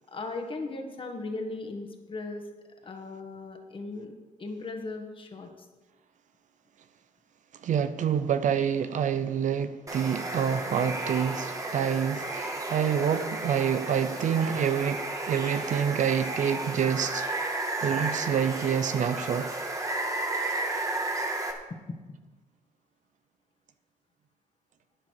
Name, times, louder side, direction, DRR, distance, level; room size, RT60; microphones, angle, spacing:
voice 1, 0.1-2.5 2.8-4.1 4.4-5.5 21.7-22.0, left 3 dB, 40° left, 1.8 m, -37 dB
voice 2, 7.6-17.3 17.5-19.5, right 8 dB, 65° right, 0.6 m, -27 dB
Water, 9.9-21.5, right 2 dB, 25° right, 1.7 m, -33 dB
11.5 x 9.6 x 4.7 m
cardioid pair, 105°, 14 cm